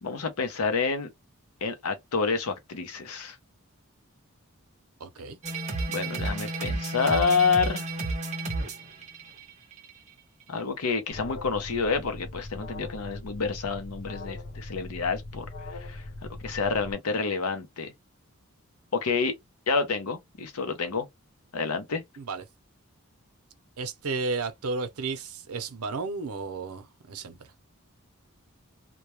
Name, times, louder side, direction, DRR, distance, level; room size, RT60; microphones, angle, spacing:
voice 1, 0.0-1.1 1.6-3.4 5.9-7.9 10.5-15.5 15.9-16.0 16.4-17.9 18.9-19.3 19.7-21.1 21.5-22.0, left 5 dB, 90° left, 0.7 m, -28 dB
voice 2, 5.0-5.4 22.2-22.4 23.8-27.5, right 4 dB, 85° right, 0.6 m, -33 dB
sound 1, 5.4-9.9, right 2 dB, 30° right, 0.6 m, -32 dB
Alarm, 11.1-16.9, left 2 dB, 55° left, 0.6 m, -40 dB
2.2 x 2.2 x 2.9 m
head